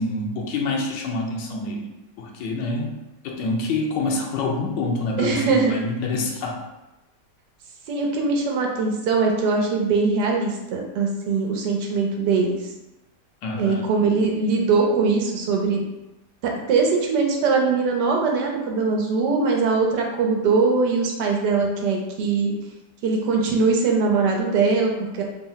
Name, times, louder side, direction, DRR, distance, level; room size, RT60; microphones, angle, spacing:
voice 1, 0.0-2.9 3.2-6.6 13.4-13.9, left 2 dB, 90° left, 0 dB, 1.3 m, -26 dB
voice 2, 5.2-5.7 7.9-12.6 13.6-15.8 16.4-22.5 23.0-25.2, right 4 dB, 80° right, 1 dB, 1.3 m, -21 dB
3.9 x 2.0 x 3.9 m, 0.98 s
omnidirectional pair, 1.8 m